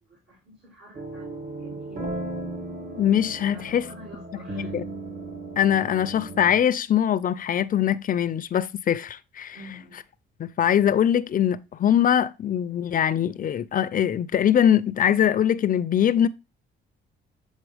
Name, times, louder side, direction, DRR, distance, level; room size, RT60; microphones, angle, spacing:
voice 1, 0.0-2.2 3.5-4.8 9.5-10.0, left 1 dB, 65° right, 2.3 m, -47 dB
sound 1, 0.9-6.6, right 2 dB, 40° right, 1.3 m, -36 dB
voice 2, 3.0-3.8 4.7-4.8 5.6-9.6 10.4-16.3, left 9 dB, 45° left, 0.5 m, -22 dB
7.2 x 4.1 x 3.3 m
cardioid pair, 90°, 20 cm